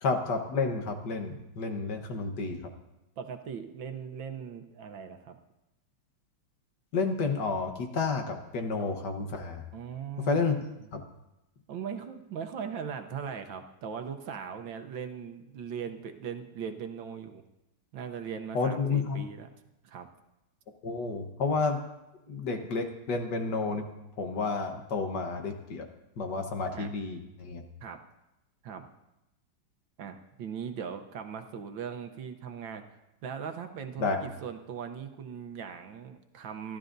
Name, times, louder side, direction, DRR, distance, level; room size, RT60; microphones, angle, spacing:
voice 1, 0.0-2.7 6.9-9.6 10.2-10.5 10.9-11.0 18.5-19.3 20.8-21.8 22.3-23.8 24.2-25.9 26.2-27.6 34.0-34.2, left 4 dB, 55° left, 4 dB, 1.7 m, -30 dB
voice 2, 3.2-5.4 9.7-10.5 11.7-17.4 17.9-19.5 19.8-20.1 26.7-26.9 27.8-28.0 28.6-28.9 30.0-36.8, right 7 dB, 70° right, 6 dB, 1.5 m, -39 dB
27.5 x 12.5 x 2.6 m, 0.94 s
omnidirectional pair, 2.3 m